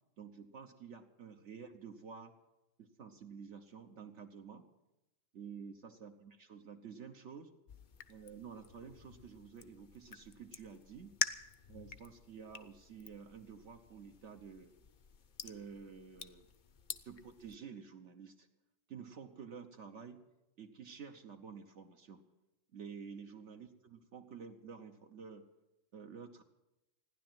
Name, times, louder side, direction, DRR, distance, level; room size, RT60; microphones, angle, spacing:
voice 1, 0.2-2.3 2.8-4.6 5.3-7.5 8.1-11.1 11.7-14.7 15.4-16.5 17.0-18.5 18.9-20.2 20.6-22.2 22.7-25.4 25.9-26.4, right 6 dB, 65° right, 4 dB, 1.2 m, -50 dB
sound 1, 7.7-17.6, left 7 dB, 45° left, 0.7 m, -46 dB
15.5 x 10.5 x 7.6 m, 0.95 s
omnidirectional pair, 1.3 m